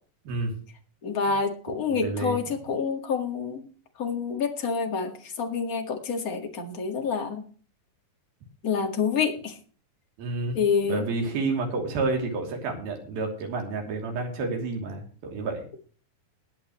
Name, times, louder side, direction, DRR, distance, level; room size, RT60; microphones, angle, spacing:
voice 1, 1.0-3.7 4.0-7.4 8.6-9.5 10.5-11.0, left 5 dB, 35° left, 4 dB, 1.7 m, -27 dB
voice 2, 1.9-2.4 10.2-10.6 10.8-15.6, right 3 dB, 90° right, 2 dB, 4.9 m, -30 dB
21.5 x 8.4 x 3.1 m, 0.42 s
omnidirectional pair, 4.1 m